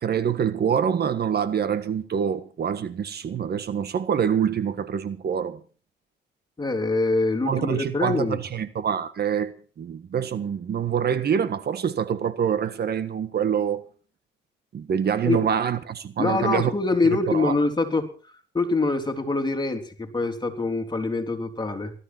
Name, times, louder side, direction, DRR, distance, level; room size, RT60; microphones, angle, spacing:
voice 1, 0.0-5.6 7.4-9.5 9.8-13.8 14.7-16.7 17.3-17.5, right 8 dB, 55° right, 1.5 m, -25 dB
voice 2, 6.6-8.4 15.3-15.4 16.2-21.9, left 3 dB, 20° left, 3.6 m, -25 dB
19.0 x 13.5 x 4.5 m
cardioid pair, 90°, 20 cm